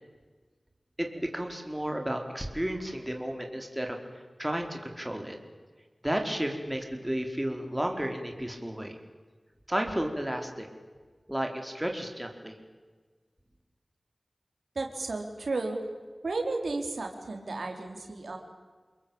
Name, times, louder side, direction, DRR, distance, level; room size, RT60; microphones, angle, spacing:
voice 1, 1.0-5.4 6.0-9.0 9.7-10.7 11.3-12.5, right 1 dB, 10° right, 3 dB, 4.8 m, -32 dB
voice 2, 14.8-15.8 16.2-18.4, right 3 dB, 85° right, 3 dB, 4.0 m, -33 dB
29.5 x 21.5 x 8.9 m, 1.4 s
cardioid pair, 40°, 0 cm